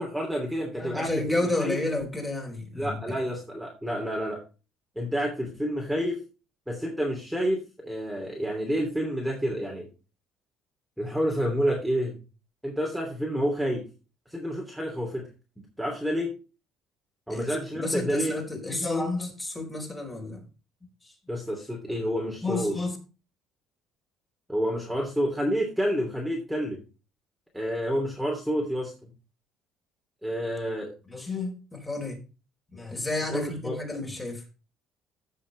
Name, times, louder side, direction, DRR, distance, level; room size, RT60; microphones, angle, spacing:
voice 1, 0.0-1.8 2.7-4.4 4.9-6.2 6.7-9.9 11.0-12.2 12.6-13.8 14.3-15.3 15.6-16.3 17.3-18.4 21.3-22.7 24.5-26.8 27.5-29.1 30.2-30.9 33.3-33.8, equal, ahead, 3.0 m, -29 dB
voice 2, 0.7-3.2 17.3-20.4 21.0-21.1 21.9-22.0 22.4-23.0 31.1-32.2 32.7-34.4, left 2 dB, 15° left, 4.3 m, -31 dB
15.5 x 6.5 x 3.3 m
cardioid pair, 125°, 0 cm